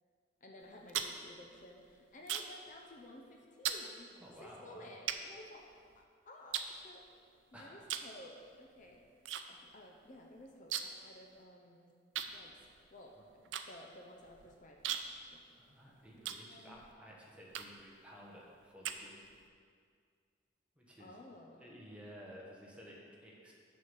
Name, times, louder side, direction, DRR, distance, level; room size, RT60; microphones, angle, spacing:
voice 1, 0.4-4.1 4.4-7.1 7.5-9.0 9.5-12.0 12.3-12.6 12.9-15.0 15.3-15.4 16.5-16.8 21.0-21.8, left 1 dB, 40° left, 1 dB, 0.6 m, -54 dB
sound 1, 0.6-2.7 3.0-3.3 3.6-3.9 4.5-4.6 5.1-6.0 6.5-7.4 7.8-8.2 8.4-9.4 9.7-9.8 10.1-11.1 11.4-11.5 12.1-16.9 17.5-17.9 18.4-19.5, right 9 dB, 80° right, 0.5 m, -40 dB
voice 2, 4.2-4.9 7.5-7.9 15.5-19.2 20.8-21.2 21.6-23.5, equal, 5° right, -4 dB, 1.2 m, -54 dB
6.6 x 5.6 x 7.2 m, 2.2 s
head